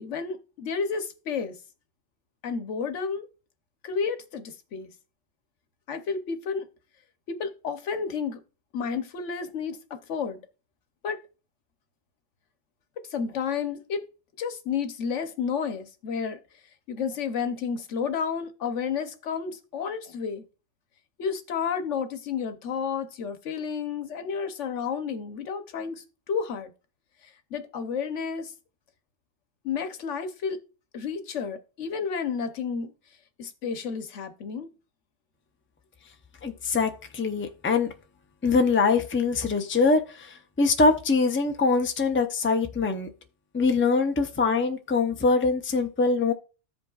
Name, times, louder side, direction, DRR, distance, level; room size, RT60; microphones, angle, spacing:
voice 1, 0.0-1.6 2.4-3.3 3.8-4.9 5.9-6.7 7.3-8.4 8.7-10.4 11.0-11.2 13.1-14.0 14.4-16.4 16.9-20.4 21.2-26.7 27.5-28.5 29.6-30.6 30.9-32.9 33.4-34.7, left 6 dB, 85° left, 1.2 m, -31 dB
voice 2, 36.4-37.9 38.4-43.1 43.5-46.3, left 4 dB, 15° left, 0.5 m, -23 dB
14.5 x 5.2 x 2.4 m
omnidirectional pair, 1.2 m